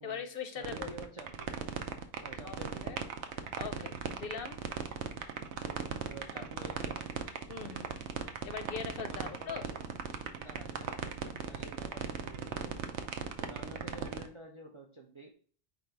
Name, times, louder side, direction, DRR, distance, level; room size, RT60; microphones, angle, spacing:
voice 1, 0.0-0.9 2.4-2.6 2.8-3.0 3.6-4.6 6.3-6.5 7.5-7.9 8.4-9.6, left 6 dB, 60° left, 7 dB, 0.7 m, -40 dB
voice 2, 0.6-1.5 2.2-2.9 5.7-7.2 9.0-9.9 10.4-13.0 13.4-15.3, right 1 dB, 40° right, 2 dB, 0.4 m, -50 dB
sound 1, 0.6-14.3, right 8 dB, 80° right, 0.9 m, -37 dB
4.6 x 2.6 x 4.4 m, 0.43 s
omnidirectional pair, 1.2 m